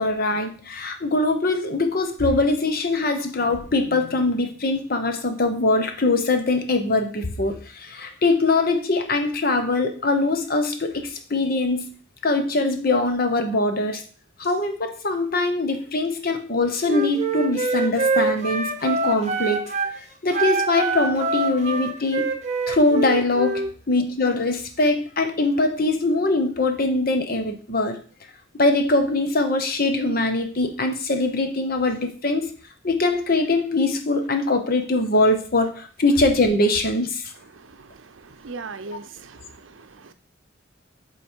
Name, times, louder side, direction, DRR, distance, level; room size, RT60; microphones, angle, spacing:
voice 1, 0.0-11.9 12.2-14.0 14.4-19.7 19.9-22.3 22.7-28.0 28.6-32.5 32.8-37.3, left 2 dB, 50° left, 6 dB, 0.9 m, -22 dB
Wind instrument woodwind instrument, 16.8-19.9 20.3-23.7, right 3 dB, 35° right, 0.9 m, -25 dB
voice 2, 37.5-40.1, right 3 dB, 80° right, 10 dB, 0.6 m, -40 dB
8.3 x 3.3 x 4.4 m, 0.40 s
head